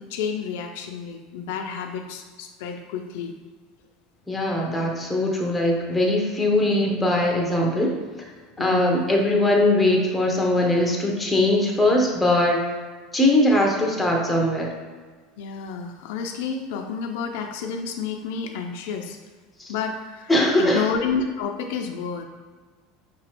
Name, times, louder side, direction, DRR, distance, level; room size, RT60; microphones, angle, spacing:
voice 1, 0.0-3.3 8.6-9.0 15.4-19.2 19.7-20.3 20.6-22.2, left 6 dB, 75° left, 3 dB, 0.4 m, -30 dB
voice 2, 4.3-8.3 8.6-12.6 13.1-14.7 19.6-19.7 20.3-20.9, left 1 dB, 5° left, -1 dB, 0.8 m, -21 dB
5.5 x 3.0 x 2.9 m, 1.4 s
supercardioid pair, 140°, 0 cm